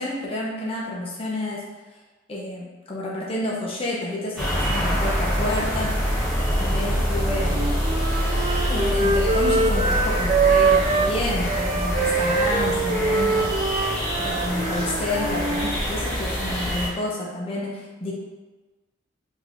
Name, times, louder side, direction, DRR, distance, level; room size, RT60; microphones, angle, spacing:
voice 1, 0.0-1.6 2.3-5.9 6.6-7.7 8.7-13.9 14.2-18.1, left 1 dB, 25° left, -5 dB, 0.6 m, -29 dB
sound 1, 4.4-16.9, equal, ahead, 1.2 m, -25 dB
Wind instrument woodwind instrument, 7.3-11.1 11.5-15.7, right 4 dB, 30° right, 0.3 m, -24 dB
5.0 x 2.9 x 2.9 m, 1.2 s
head